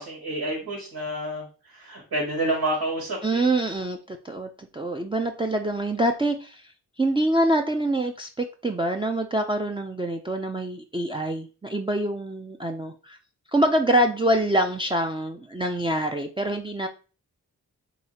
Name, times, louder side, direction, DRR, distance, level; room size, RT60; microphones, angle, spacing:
voice 1, 0.0-3.4, right 1 dB, 75° right, -3 dB, 1.8 m, -29 dB
voice 2, 3.2-6.7 7.0-13.2 13.5-16.9, right 1 dB, 15° right, 2 dB, 0.5 m, -25 dB
4.0 x 2.8 x 4.2 m, 0.35 s
cardioid pair, 50°, 38 cm